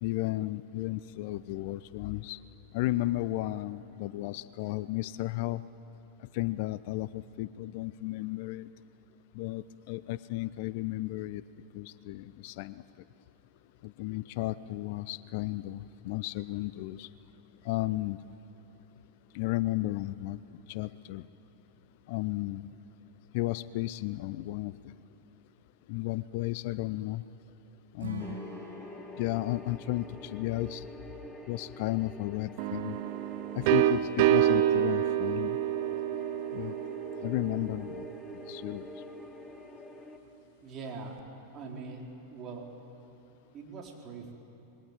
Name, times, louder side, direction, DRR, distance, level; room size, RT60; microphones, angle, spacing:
voice 1, 0.0-2.4 2.7-5.6 6.3-8.7 9.3-11.4 11.7-12.8 13.8-17.1 17.6-18.2 19.3-20.4 20.7-21.2 22.1-22.7 23.3-24.9 25.9-27.2 27.9-28.4 29.2-30.9 31.5-33.0 33.5-35.6 36.5-36.7 37.2-38.0 38.5-38.9, left 17 dB, 50° left, 17 dB, 0.5 m, -33 dB
Acoustic guitar / Strum, 28.0-31.3, right 4 dB, 75° right, 4.2 m, -46 dB
sound 1, 28.2-40.2, left 1 dB, 10° left, 1.6 m, -46 dB
sound 2, 32.6-38.3, right 12 dB, 45° right, 1.1 m, -28 dB
voice 2, 40.6-41.2 41.5-42.7 43.5-44.3, right 4 dB, 30° right, 0 dB, 4.3 m, -42 dB
26.5 x 21.5 x 9.1 m, 2.9 s
figure-of-eight pair, 90°, 0 cm